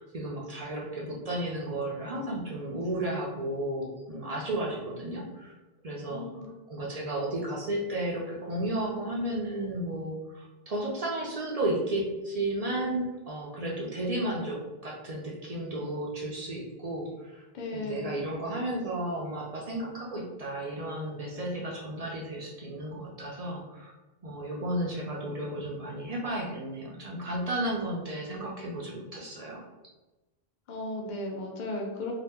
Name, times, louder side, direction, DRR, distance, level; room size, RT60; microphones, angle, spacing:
voice 1, 0.0-5.5 5.8-17.4 17.7-23.9 24.2-29.6, right 1 dB, 45° right, -3 dB, 0.6 m, -33 dB
voice 2, 6.1-6.7 17.5-18.2 30.7-32.1, left 2 dB, 50° left, 0 dB, 0.7 m, -36 dB
2.8 x 2.2 x 3.5 m, 1.1 s
omnidirectional pair, 1.1 m